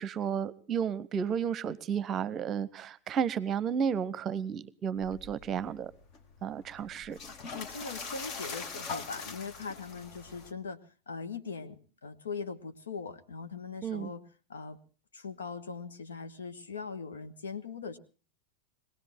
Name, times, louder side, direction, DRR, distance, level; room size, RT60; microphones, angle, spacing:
voice 1, 0.0-5.9 6.4-7.2 13.8-14.1, right 7 dB, 30° right, 18 dB, 0.9 m, -32 dB
sound 1, 5.0-10.5, left 4 dB, 40° left, 1.6 m, -43 dB
voice 2, 7.5-10.8 11.1-14.2 14.5-14.8 15.1-18.0, left 5 dB, 70° left, 8 dB, 1.4 m, -40 dB
22.0 x 17.5 x 3.5 m, 0.37 s
figure-of-eight pair, 90°, 0 cm